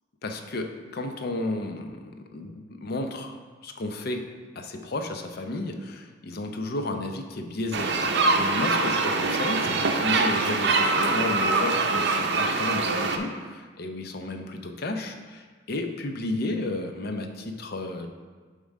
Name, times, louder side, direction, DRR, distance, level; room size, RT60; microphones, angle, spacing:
voice 1, 0.2-3.3 3.6-4.3 4.6-18.1, left 2 dB, 55° left, 5 dB, 0.6 m, -32 dB
sound 1, 7.7-13.2, right 3 dB, 60° right, 0.6 m, -24 dB
6.9 x 3.7 x 5.3 m, 1.5 s
head